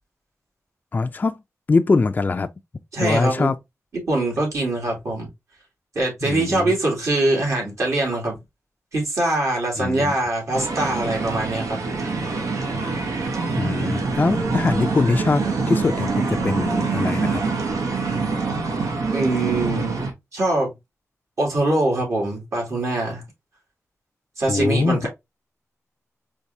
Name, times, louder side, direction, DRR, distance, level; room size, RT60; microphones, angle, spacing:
voice 1, 0.9-1.4 1.7-2.5 3.0-3.6 6.2-6.8 9.8-10.1 13.6-17.4 24.5-25.0, left 3 dB, 30° left, 0.3 m, -22 dB
voice 2, 2.9-3.5 4.1-5.3 5.9-8.4 8.9-12.1 19.1-20.7 21.4-23.2 24.4-25.1, right 2 dB, 65° right, 2.5 m, -23 dB
sound 1, 10.5-20.1, right 4 dB, 90° right, 1.0 m, -25 dB
4.7 x 3.3 x 2.6 m
wide cardioid pair, 100°, 6 cm